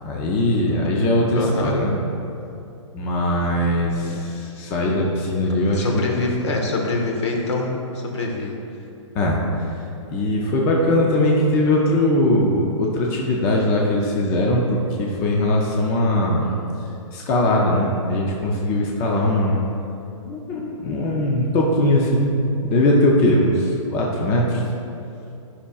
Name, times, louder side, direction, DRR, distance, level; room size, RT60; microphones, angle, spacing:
voice 1, 0.0-1.9 2.9-6.2 9.1-9.4 10.1-14.6 15.0-16.5 17.1-19.6 20.2-24.6, left 1 dB, 10° left, -2 dB, 0.3 m, -20 dB
voice 2, 1.3-1.8 4.0-4.2 5.7-8.6, left 3 dB, 60° left, 1 dB, 1.3 m, -25 dB
11.0 x 5.5 x 2.3 m, 2.8 s
hypercardioid pair, 165°, 17 cm